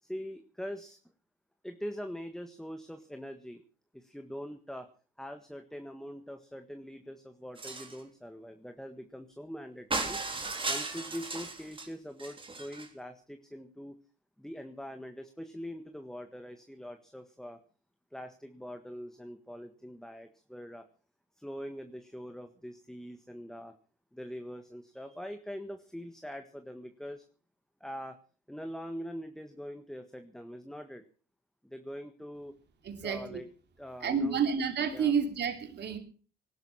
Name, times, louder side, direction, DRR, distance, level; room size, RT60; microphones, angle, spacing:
voice 1, 0.0-1.0 1.6-3.6 3.9-4.9 5.2-10.2 10.7-14.0 14.4-17.6 18.1-20.9 21.4-23.7 24.1-27.2 27.8-28.2 28.5-31.0 31.6-32.5 33.0-33.5 33.8-34.4 34.9-35.1, equal, ahead, 6 dB, 1.6 m, -43 dB
sound 1, 7.6-8.0 9.9-11.9 12.2-12.9, right 3 dB, 25° right, 3.8 m, -36 dB
voice 2, 32.8-33.4 34.0-36.0, right 6 dB, 60° right, 6 dB, 3.1 m, -30 dB
18.5 x 12.0 x 5.8 m, 0.41 s
cardioid pair, 90°, 20 cm